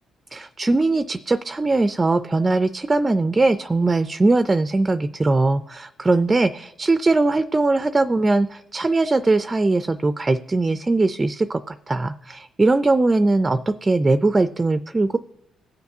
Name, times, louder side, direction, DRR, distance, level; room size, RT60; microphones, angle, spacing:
voice 1, 0.3-15.2, right 2 dB, 25° right, 11 dB, 0.4 m, -20 dB
18.0 x 7.0 x 2.7 m, 0.92 s
cardioid pair, 90°, 0 cm